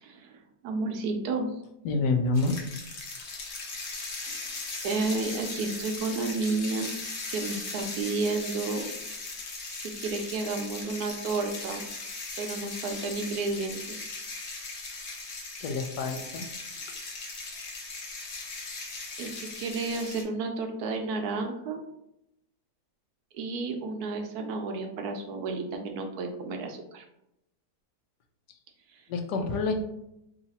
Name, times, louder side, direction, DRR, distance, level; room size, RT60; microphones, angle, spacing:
voice 1, 0.0-1.5 4.3-4.5 4.8-6.9 7.3-8.9 10.0-11.8 12.4-14.0 19.2-21.8 23.3-27.0 28.9-29.0, right 3 dB, 70° right, 4 dB, 1.0 m, -31 dB
voice 2, 1.8-2.6 3.2-3.4 15.6-16.5 29.1-29.7, left 3 dB, 80° left, 5 dB, 1.2 m, -28 dB
sound 1, 2.3-20.2, left 3 dB, 50° left, 0.9 m, -38 dB
3.1 x 2.8 x 4.0 m, 0.83 s
omnidirectional pair, 1.8 m